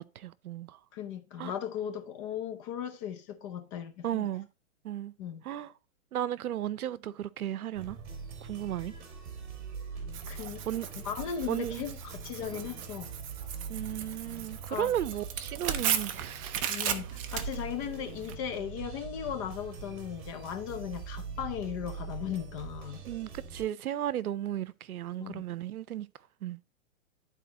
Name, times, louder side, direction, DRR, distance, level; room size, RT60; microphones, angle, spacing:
voice 1, 0.0-0.8 1.4-1.5 4.0-4.5 4.8-5.1 5.4-5.7 6.1-8.0 8.4-8.9 10.7-10.9 11.5-11.8 13.7-16.6 23.1-26.1 26.4-26.6, right 12 dB, 80° right, 0.7 m, -34 dB
voice 2, 0.9-4.3 5.2-5.4 10.3-10.6 11.0-13.2 14.7-14.9 16.7-23.0 25.2-25.4, left 9 dB, 25° left, 0.6 m, -37 dB
sound 1, 7.7-23.6, right 5 dB, 40° right, 3.0 m, -43 dB
Tearing, 10.1-18.3, right 9 dB, 25° right, 0.5 m, -36 dB
12.0 x 4.3 x 2.8 m
hypercardioid pair, 145°, 43 cm